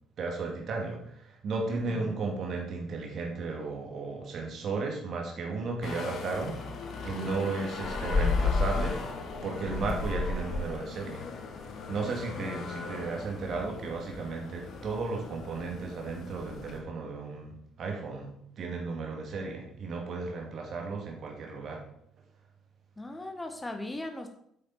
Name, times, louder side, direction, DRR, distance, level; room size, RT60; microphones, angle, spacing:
voice 1, 0.2-6.6 7.0-9.0 9.4-11.2 11.9-21.8, right 3 dB, 50° right, 1 dB, 2.3 m, -34 dB
voice 2, 1.7-2.3 23.0-24.3, left 1 dB, 15° left, 5 dB, 1.3 m, -38 dB
sound 1, 5.8-16.8, left 4 dB, 55° left, 1.3 m, -34 dB
8.2 x 6.7 x 4.3 m, 0.72 s
figure-of-eight pair, 50°, 0 cm